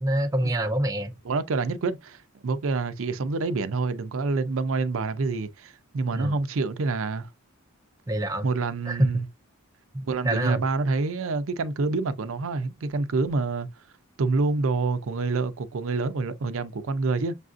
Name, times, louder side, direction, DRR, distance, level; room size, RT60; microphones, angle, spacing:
voice 1, 0.0-1.1 6.1-6.3 8.1-8.5 8.9-9.1 9.9-10.6, right 1 dB, 15° right, 0.5 m, -26 dB
voice 2, 1.2-7.3 8.4-9.3 10.1-13.7 14.2-17.4, right 3 dB, 70° right, 0.5 m, -27 dB
6.7 x 2.4 x 2.5 m
head